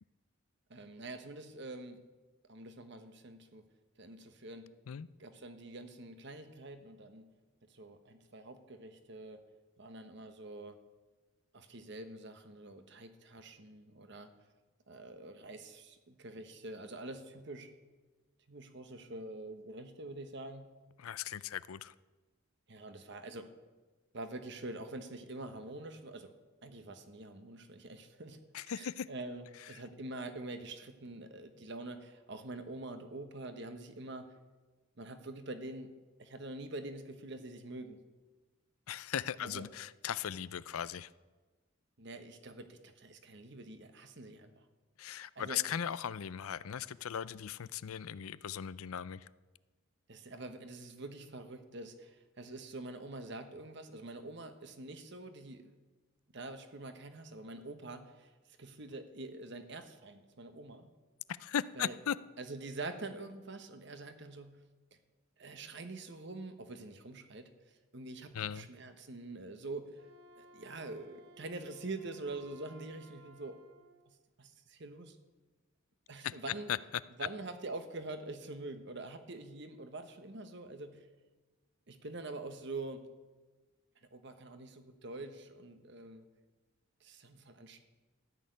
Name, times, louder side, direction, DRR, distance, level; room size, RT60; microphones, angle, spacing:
voice 1, 0.7-2.0 2.5-3.6 4.0-4.7 5.2-7.3 7.7-9.4 9.8-10.8 11.5-14.3 14.9-17.7 18.5-20.7 22.7-23.5 24.1-26.3 26.6-34.3 35.0-35.9 36.2-38.0 39.4-39.6 42.0-44.6 45.3-45.6 50.1-55.7 56.3-58.3 58.6-60.9 61.8-62.0 62.4-64.6 65.4-70.0 70.4-73.6 74.1-75.2 76.1-76.7 77.2-81.1 81.9-83.0 84.1-86.3 87.0-87.8, right 2 dB, 55° right, 8 dB, 1.2 m, -45 dB
voice 2, 21.0-21.9 28.5-29.1 38.9-41.1 45.0-49.3 61.4-62.2 68.3-68.7 76.2-76.3 76.7-76.8, left 9 dB, 85° left, 18 dB, 0.5 m, -38 dB
Wind instrument woodwind instrument, 69.9-74.0, right 3 dB, 75° right, 1.4 m, -59 dB
13.5 x 6.6 x 9.3 m, 1.2 s
head